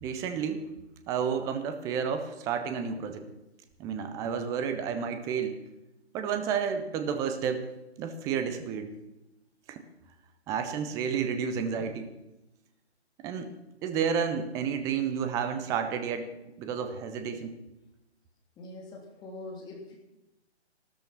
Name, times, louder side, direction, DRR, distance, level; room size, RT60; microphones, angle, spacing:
voice 1, 0.0-0.7 1.1-3.3 3.8-5.6 6.1-7.7 8.0-8.9 9.7-9.8 10.5-12.1 13.2-13.5 13.8-16.3 16.6-17.5, right 7 dB, 10° right, 8 dB, 0.7 m, -31 dB
voice 2, 18.6-19.9, left 2 dB, 10° left, 0 dB, 3.0 m, -43 dB
13.5 x 13.0 x 5.8 m, 0.95 s
figure-of-eight pair, 135°, 34 cm